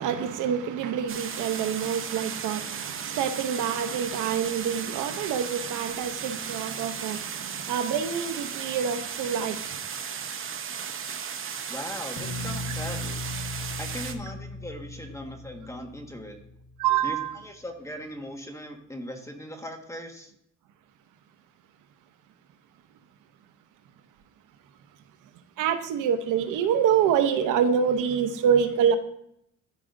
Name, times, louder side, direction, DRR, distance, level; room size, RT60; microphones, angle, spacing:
voice 1, 0.0-2.6 3.0-7.2 7.7-9.6 16.8-17.3 25.6-29.0, right 8 dB, 90° right, 0.8 m, -26 dB
sound 1, 1.1-14.1, right 7 dB, 45° right, 0.8 m, -35 dB
voice 2, 11.7-13.2 13.8-16.4 17.0-20.3, equal, 10° left, 1.5 m, -39 dB
sound 2, 12.2-17.1, left 2 dB, 75° left, 1.6 m, -38 dB
13.5 x 5.0 x 2.6 m
cardioid pair, 90°, 30 cm